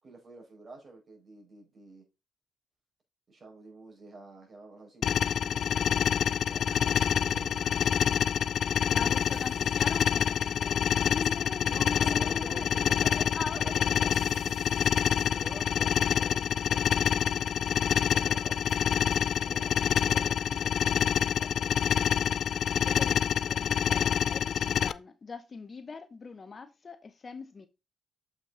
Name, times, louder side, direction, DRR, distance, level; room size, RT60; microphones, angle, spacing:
voice 1, 0.0-2.0 3.3-8.1 8.7-9.7 11.7-18.5 19.3-22.5 24.5-24.7, right 3 dB, 35° right, 4.8 m, -49 dB
sound 1, 5.0-24.9, left 8 dB, 60° left, 0.4 m, -27 dB
sound 2, 6.6-19.2, equal, 50° right, 4.0 m, -51 dB
voice 2, 8.9-12.6 13.3-14.0 22.8-27.7, left 4 dB, 35° left, 0.8 m, -42 dB
7.3 x 5.9 x 3.8 m
cardioid pair, 100°, 0 cm